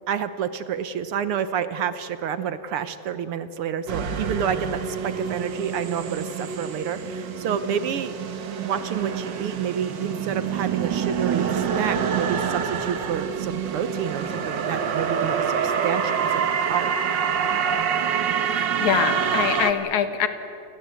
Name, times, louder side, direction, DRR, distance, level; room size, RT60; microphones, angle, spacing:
voice 1, 0.1-8.3 8.6-16.9, right 8 dB, 70° right, 12 dB, 1.4 m, -29 dB
sound 1, 3.9-19.7, right 7 dB, 50° right, 1.5 m, -26 dB
voice 2, 18.5-20.3, left 9 dB, 80° left, 9 dB, 2.8 m, -24 dB
29.0 x 21.0 x 8.3 m, 3.0 s
omnidirectional pair, 3.4 m